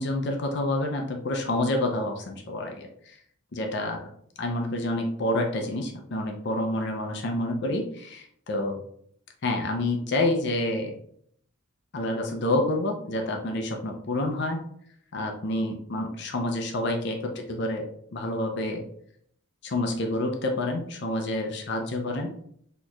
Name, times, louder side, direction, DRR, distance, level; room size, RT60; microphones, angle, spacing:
voice 1, 0.0-3.1 3.5-4.1 4.4-8.8 9.4-10.9 11.9-14.6 15.1-18.8 19.6-22.3, left 1 dB, 60° left, 3 dB, 0.5 m, -28 dB
4.3 x 2.9 x 2.4 m, 0.66 s
head